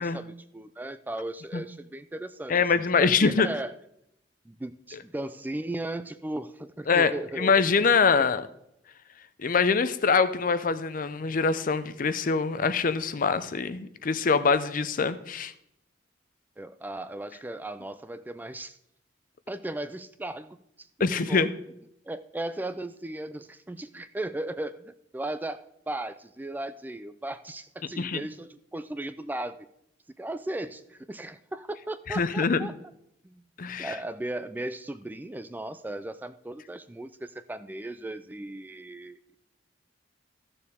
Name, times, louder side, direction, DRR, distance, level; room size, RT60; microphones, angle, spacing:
voice 1, 0.0-3.7 4.5-7.6 8.2-8.3 16.6-18.8 19.5-21.5 22.1-29.7 30.2-32.7 33.2-33.4 33.8-39.4, right 1 dB, 10° right, 12 dB, 0.3 m, -36 dB
voice 2, 2.5-3.5 6.9-8.5 9.4-15.5 21.0-21.5 28.0-28.2 32.1-32.7 33.6-33.9, left 5 dB, 50° left, 13 dB, 0.5 m, -24 dB
14.5 x 6.8 x 3.5 m, 0.76 s
head